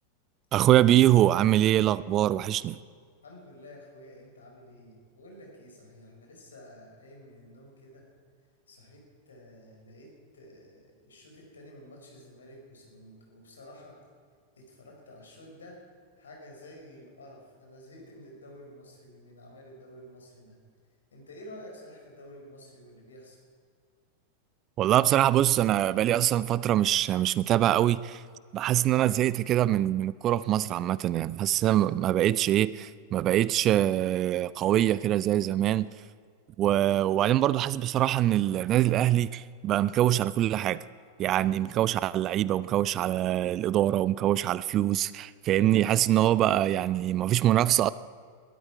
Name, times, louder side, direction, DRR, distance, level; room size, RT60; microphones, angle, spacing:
voice 1, 0.5-2.8 24.8-28.2 28.5-35.9 36.6-40.8 41.2-47.9, right 13 dB, 35° right, 0.4 m, -24 dB
voice 2, 3.2-8.1 8.7-14.0 14.6-15.8 16.2-20.6 21.1-23.4, left 1 dB, 70° left, 4.8 m, -50 dB
sound 1, 39.7-42.2, equal, 85° right, 4.2 m, -58 dB
21.0 x 13.0 x 4.7 m
figure-of-eight pair, 90°, 0 cm